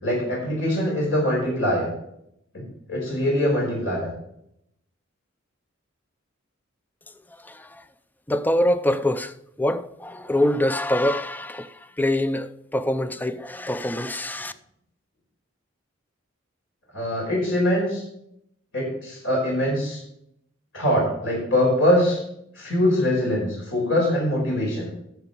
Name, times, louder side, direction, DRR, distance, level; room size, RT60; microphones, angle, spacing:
voice 1, 0.0-1.9 2.5-4.1 16.9-18.0 18.7-20.0 20.7-22.2 22.6-24.9, left 1 dB, 65° left, 4.9 m, -23 dB
voice 2, 7.4-7.8 8.3-14.5, left 1 dB, 10° left, 0.5 m, -25 dB
11.5 x 7.0 x 5.4 m
head